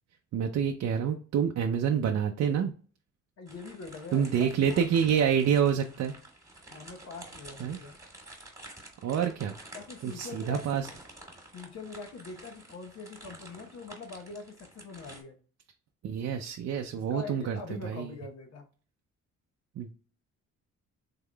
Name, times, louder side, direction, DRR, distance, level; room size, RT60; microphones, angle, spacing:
voice 1, 0.3-2.7 4.1-6.1 7.6-7.8 9.0-9.5 10.0-10.9 16.0-18.1 19.8-19.9, right 8 dB, 60° right, 4 dB, 0.5 m, -27 dB
voice 2, 3.4-4.8 5.1-5.2 6.7-7.9 9.7-10.6 11.5-15.4 16.9-18.7, left 4 dB, 55° left, 4 dB, 1.0 m, -43 dB
sound 1, 3.5-15.2, right 2 dB, 10° right, 1.6 m, -50 dB
3.7 x 3.5 x 2.2 m, 0.41 s
cardioid pair, 90°, 30 cm